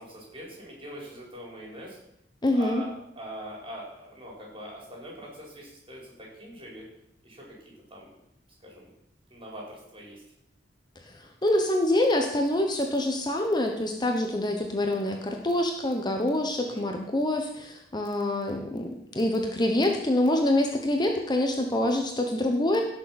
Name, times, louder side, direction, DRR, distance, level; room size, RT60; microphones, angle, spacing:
voice 1, 0.0-2.0 2.5-6.8 7.2-7.5 7.9-8.1 8.6-8.9 9.3-10.2 16.5-16.9, equal, 30° right, -3 dB, 5.0 m, -43 dB
voice 2, 2.4-2.8 11.0-22.8, left 1 dB, 25° left, 3 dB, 1.1 m, -26 dB
16.5 x 6.9 x 6.0 m, 0.79 s
head